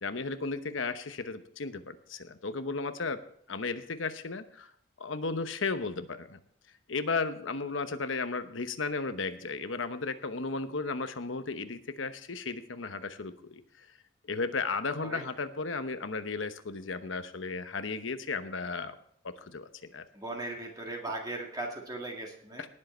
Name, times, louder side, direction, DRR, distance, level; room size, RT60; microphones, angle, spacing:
voice 1, 0.0-3.2 3.5-4.7 5.0-6.4 6.9-13.9 14.3-19.0 19.2-20.0, left 4 dB, 90° left, 10 dB, 1.0 m, -34 dB
voice 2, 20.1-22.7, right 2 dB, 20° right, 1 dB, 1.9 m, -38 dB
19.0 x 7.6 x 4.4 m, 0.67 s
head